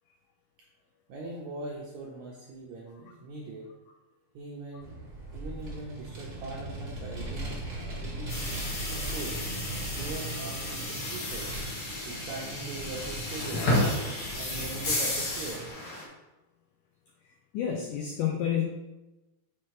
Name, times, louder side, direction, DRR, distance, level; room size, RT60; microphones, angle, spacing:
voice 1, 1.1-3.7 4.3-5.0 5.3-9.4 9.9-11.5 12.0-13.7 14.4-15.7, right 3 dB, 75° right, -3 dB, 1.7 m, -41 dB
Vehicle, 4.8-15.7, right 2 dB, 50° right, 0.8 m, -39 dB
sound 1, 8.3-16.0, left 1 dB, 70° left, 1.0 m, -32 dB
voice 2, 17.5-18.6, left 9 dB, 90° left, 2 dB, 1.8 m, -29 dB
6.2 x 4.4 x 4.7 m, 1.1 s
omnidirectional pair, 4.4 m